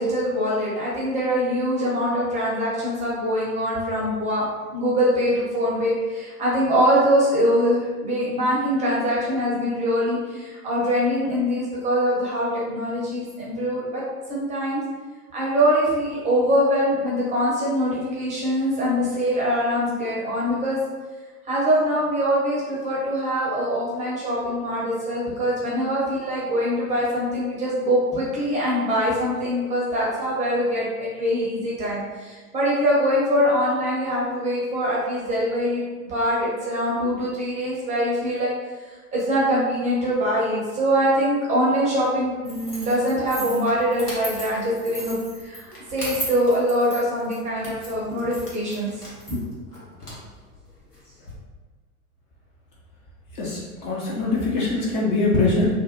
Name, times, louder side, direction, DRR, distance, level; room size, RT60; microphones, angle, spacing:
voice 1, 0.0-4.4 4.7-14.0 14.3-14.8 15.3-20.8 21.4-38.5 38.8-45.2 45.4-48.9 49.3-49.4, equal, 15° right, -6 dB, 0.6 m, -23 dB
sound 1, 42.4-51.3, equal, 90° left, 0.9 m, -37 dB
voice 2, 53.3-55.7, left 3 dB, 35° left, -5 dB, 0.5 m, -23 dB
2.5 x 2.1 x 2.8 m, 1.3 s
figure-of-eight pair, 90°, 45 cm